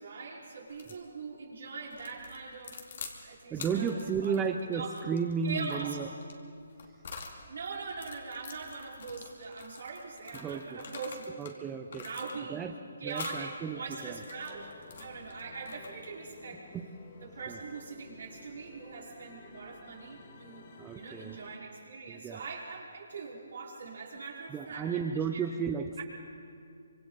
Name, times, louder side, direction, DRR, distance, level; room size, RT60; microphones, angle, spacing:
voice 1, 0.0-2.8 3.2-4.9 5.4-6.0 7.5-11.3 11.7-12.6 13.0-16.7 17.2-20.7 20.9-25.0 25.3-25.5 26.0-26.1, right 4 dB, 70° right, -3 dB, 5.1 m, -42 dB
sound 1, 0.7-1.0 1.9-3.2 3.5-7.4 7.9-11.6 11.9-12.6 13.1-13.5 14.0-16.1, left 5 dB, 60° left, 2.6 m, -47 dB
voice 2, 3.5-6.1 10.3-10.8 11.4-12.1 12.5-12.7 13.0-14.2 16.7-16.9 17.5-17.6 20.8-21.4 22.1-22.4 24.5-26.0, right 6 dB, 15° right, 5 dB, 0.7 m, -33 dB
sound 2, 13.6-21.6, left 5 dB, 40° left, 1.7 m, -54 dB
25.0 x 25.0 x 4.2 m, 2.4 s
hypercardioid pair, 150°, 0 cm